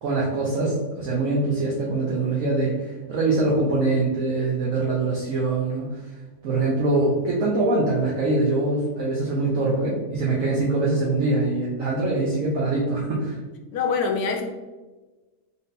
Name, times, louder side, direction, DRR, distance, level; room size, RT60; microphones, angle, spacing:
voice 1, 0.0-6.1 6.4-13.4, right 2 dB, 65° right, -4 dB, 1.0 m, -23 dB
voice 2, 13.7-14.4, left 5 dB, 75° left, 3 dB, 1.1 m, -24 dB
4.1 x 3.6 x 2.6 m, 1.2 s
omnidirectional pair, 1.7 m